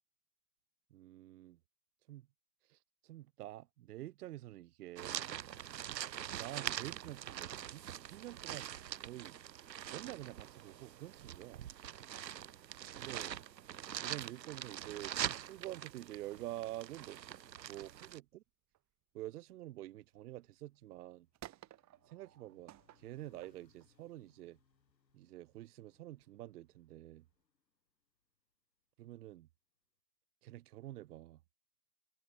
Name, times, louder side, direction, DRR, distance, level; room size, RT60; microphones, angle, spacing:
voice 1, 0.9-1.6 2.1-2.3 2.6-5.3 6.3-8.7 9.0-9.4 9.9-11.7 13.0-13.3 14.0-17.2 17.7-18.4 19.1-21.3 22.1-24.6 25.1-27.2 29.0-29.5 30.4-31.4, right 15 dB, 65° right, 1.2 m, -48 dB
sound 1, 5.0-18.2, right 10 dB, 85° right, 1.0 m, -44 dB
sound 2, 18.2-20.2 20.7-25.1 25.9-27.4, right 14 dB, 35° right, 5.8 m, -59 dB
sound 3, 20.0-28.4, left 6 dB, 85° left, 4.2 m, -75 dB
open air
hypercardioid pair, 105°, 49 cm